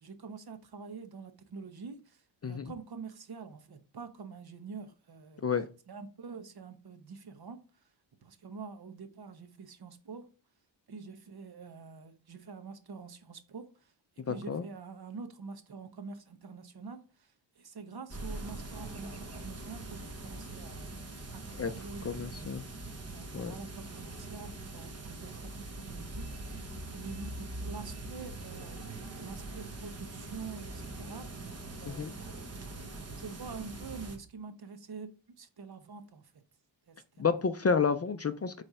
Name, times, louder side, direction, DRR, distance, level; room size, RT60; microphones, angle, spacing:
voice 1, 0.0-5.5 5.9-7.6 8.2-10.3 10.9-13.9 14.2-20.9 21.3-22.5 23.1-31.5 31.8-32.3 33.1-35.1 35.4-36.4 36.9-37.4, right 5 dB, 55° right, 1.0 m, -46 dB
voice 2, 14.3-14.6 21.6-21.7 22.0-22.6 23.3-23.5 31.9-32.1 37.2-38.6, left 5 dB, 35° left, 0.4 m, -30 dB
sound 1, 18.1-34.2, right 2 dB, 35° right, 1.1 m, -43 dB
8.6 x 3.3 x 5.4 m
wide cardioid pair, 175°, 45 cm